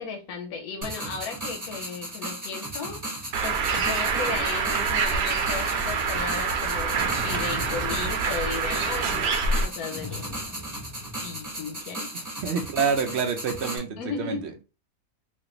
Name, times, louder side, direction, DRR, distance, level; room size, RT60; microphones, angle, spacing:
voice 1, 0.0-7.0 7.2-10.4 11.2-12.1 14.0-14.6, left 5 dB, 80° left, 1.2 m, -35 dB
sound 1, 0.8-13.8, right 1 dB, 15° right, 0.9 m, -36 dB
Bird, 3.3-9.6, right 5 dB, 80° right, 1.1 m, -26 dB
sound 2, 6.9-8.7 9.9-11.7, left 2 dB, 20° left, 0.4 m, -41 dB
voice 2, 12.1-14.4, right 5 dB, 60° right, 0.7 m, -27 dB
3.2 x 2.5 x 3.0 m
omnidirectional pair, 1.6 m